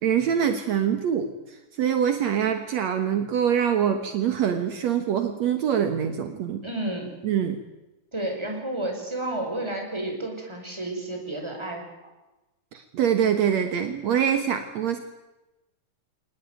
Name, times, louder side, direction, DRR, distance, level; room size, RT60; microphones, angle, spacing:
voice 1, 0.0-6.7 7.2-7.6 12.7-15.0, right 8 dB, 65° right, 7 dB, 2.6 m, -24 dB
voice 2, 6.6-7.1 8.1-11.8, right 1 dB, 10° right, 2 dB, 5.6 m, -31 dB
25.0 x 19.5 x 9.3 m, 1.0 s
omnidirectional pair, 3.4 m